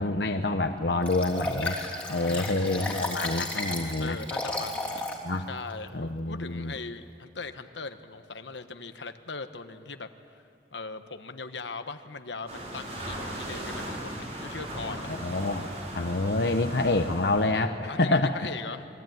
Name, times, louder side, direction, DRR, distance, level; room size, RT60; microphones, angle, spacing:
voice 1, 0.0-1.8 2.1-4.2 5.2-5.5 5.9-6.7 15.2-15.7 15.9-18.4, left 2 dB, 70° left, 5 dB, 1.1 m, -27 dB
Liquid, 1.1-5.2 5.7-5.8, left 2 dB, 10° left, 3.2 m, -33 dB
voice 2, 2.3-2.9 4.0-5.0 5.5-10.1 10.3-10.4 10.7-15.2 17.9-18.9, left 4 dB, 85° left, 8 dB, 1.3 m, -40 dB
sound 1, 12.5-17.5, right 1 dB, 35° right, 5.4 m, -37 dB
28.5 x 22.5 x 9.4 m, 2.6 s
head